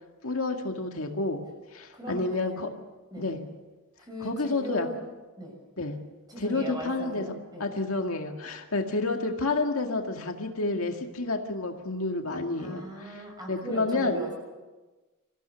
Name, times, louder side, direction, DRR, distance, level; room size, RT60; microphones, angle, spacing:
voice 1, 0.2-1.4 1.7-2.7 3.2-3.4 4.2-4.9 5.8-6.0 6.4-7.2 7.6-13.1 13.5-14.2, left 3 dB, 75° left, 3 dB, 2.0 m, -29 dB
voice 2, 1.9-2.7 3.1-3.3 4.0-5.0 5.4-5.6 6.3-7.7 12.6-14.3, right 1 dB, 20° right, 1 dB, 7.0 m, -38 dB
26.0 x 15.5 x 6.9 m, 1.2 s
head